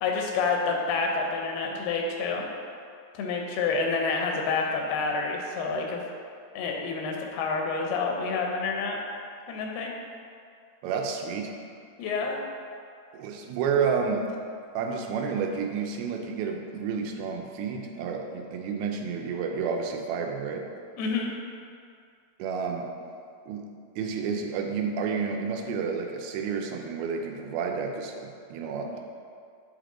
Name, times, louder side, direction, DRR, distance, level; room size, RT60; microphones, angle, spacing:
voice 1, 0.0-2.4 3.1-6.0 6.6-9.0 9.5-9.9 12.0-12.4 21.0-21.3 28.9-29.0, left 4 dB, 85° left, 1 dB, 2.6 m, -28 dB
voice 2, 10.8-11.6 13.1-14.3 14.8-20.7 22.4-22.9 23.5-29.0, right 5 dB, 85° right, 2 dB, 2.5 m, -30 dB
9.1 x 3.4 x 3.8 m, 2.3 s
omnidirectional pair, 4.4 m